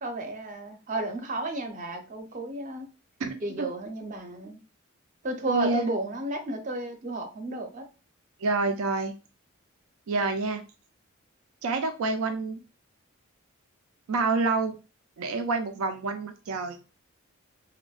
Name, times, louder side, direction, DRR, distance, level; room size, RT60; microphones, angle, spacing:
voice 1, 0.0-2.9 3.4-4.6 5.2-7.8, right 2 dB, 40° right, 4 dB, 0.6 m, -32 dB
voice 2, 3.2-3.7 5.5-5.9 8.4-9.1 10.1-10.6 11.6-12.6 14.1-14.7 15.2-16.8, right 3 dB, 85° right, 7 dB, 0.4 m, -28 dB
3.3 x 2.1 x 2.3 m, 0.32 s
head